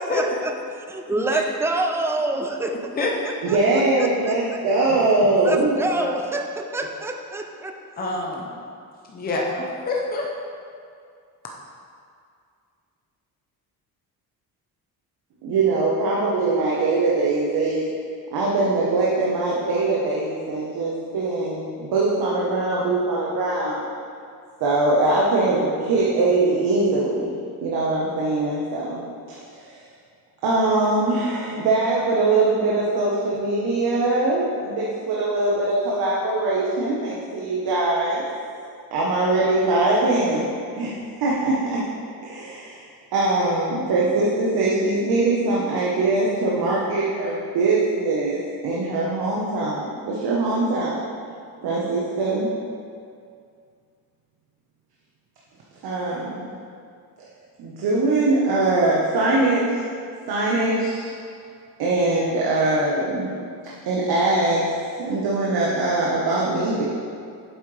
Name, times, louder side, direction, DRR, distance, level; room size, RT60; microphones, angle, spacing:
voice 1, 0.0-0.5 0.9-3.1 3.5-3.6 4.0-4.6 5.4-8.2, right 2 dB, 5° right, 4 dB, 0.3 m, -27 dB
voice 2, 1.2-1.5 3.0-3.4 5.9-6.1 8.0-8.6 9.1-10.3, left 2 dB, 25° left, -2 dB, 0.8 m, -27 dB
voice 3, 3.4-5.8 15.4-17.9 18.3-23.8 24.6-27.3 27.6-29.0 29.3-29.7 30.4-38.3 38.9-41.8 42.2-42.8 43.1-51.0 51.6-52.5 55.8-56.6 57.6-59.7 60.3-61.1 61.8-63.4 63.8-64.7 65.0-66.8, right 2 dB, 75° right, -5 dB, 1.3 m, -22 dB
8.3 x 7.9 x 3.4 m, 2.3 s
cardioid pair, 175°, 38 cm